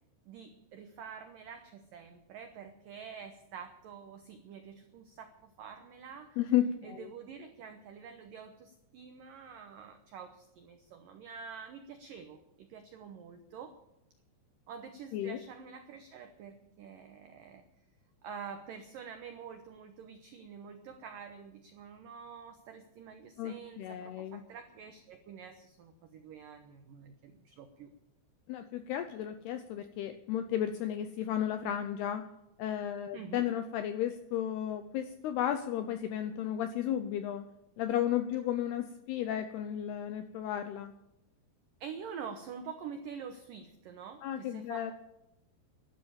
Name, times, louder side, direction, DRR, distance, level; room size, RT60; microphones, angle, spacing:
voice 1, 0.3-6.4 6.8-13.8 14.7-17.6 18.2-27.9 33.1-33.5 41.8-44.9, right 6 dB, 85° right, 6 dB, 1.9 m, -47 dB
voice 2, 6.4-7.1 15.1-15.4 23.4-24.4 28.5-32.2 32.6-37.5 37.8-40.9 44.2-44.9, left 10 dB, 85° left, 9 dB, 2.3 m, -33 dB
12.0 x 11.0 x 8.7 m, 0.89 s
omnidirectional pair, 5.4 m